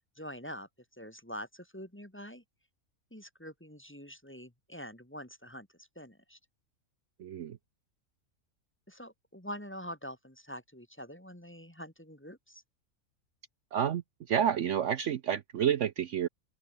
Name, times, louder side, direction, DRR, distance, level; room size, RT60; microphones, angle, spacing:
voice 1, 0.2-2.4 3.1-6.4 8.9-12.6, equal, 10° left, 2.3 m, -45 dB
voice 2, 7.2-7.6 13.7-14.0 14.3-16.3, right 9 dB, 60° right, 1.0 m, -29 dB
open air
omnidirectional pair, 1.5 m